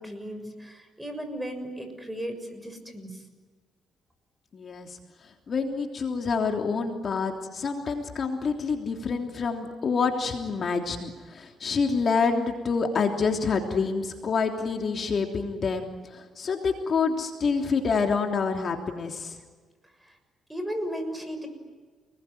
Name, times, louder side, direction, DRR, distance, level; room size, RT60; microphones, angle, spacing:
voice 1, 0.0-3.2 20.0-20.1 20.5-21.5, equal, 5° right, 7 dB, 6.7 m, -35 dB
voice 2, 4.5-5.0 5.5-19.4, left 5 dB, 50° left, 3 dB, 3.3 m, -27 dB
29.5 x 20.5 x 9.4 m, 1.4 s
cardioid pair, 90°, 0 cm